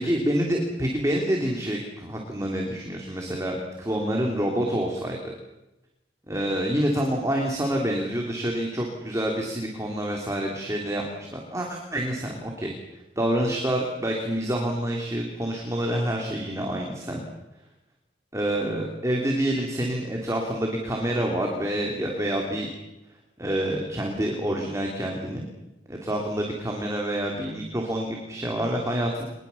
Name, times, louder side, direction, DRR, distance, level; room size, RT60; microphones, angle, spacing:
voice 1, 0.0-5.3 6.3-12.7 13.1-17.2 18.3-22.7 23.4-25.5 25.9-29.2, right 1 dB, 15° right, 0 dB, 3.2 m, -27 dB
24.0 x 21.5 x 7.2 m, 0.98 s
head